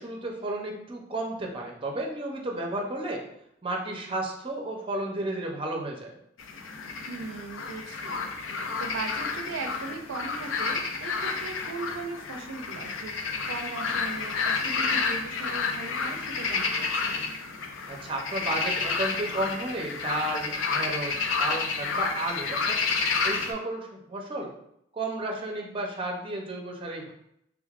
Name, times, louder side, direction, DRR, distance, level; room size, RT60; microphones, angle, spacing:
voice 1, 0.0-3.2 3.6-6.1 17.9-22.8 23.2-24.5 24.9-27.1, right 1 dB, 30° right, 1 dB, 0.6 m, -32 dB
sound 1, 6.4-23.5, left 4 dB, 90° left, 0.5 m, -30 dB
voice 2, 7.0-8.3 8.8-17.3, right 4 dB, 80° right, 4 dB, 0.4 m, -39 dB
3.5 x 3.3 x 2.4 m, 0.76 s
head